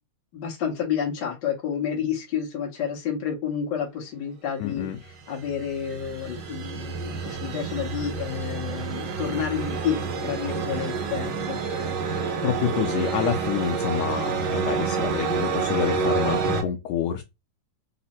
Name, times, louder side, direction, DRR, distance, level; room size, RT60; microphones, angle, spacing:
voice 1, 0.3-4.9 5.3-11.6, left 8 dB, 60° left, 1.2 m, -30 dB
voice 2, 4.6-5.0 12.4-17.2, left 9 dB, 80° left, 1.6 m, -28 dB
sound 1, 5.1-16.6, right 5 dB, 70° right, 1.2 m, -28 dB
4.8 x 2.0 x 4.2 m
omnidirectional pair, 3.4 m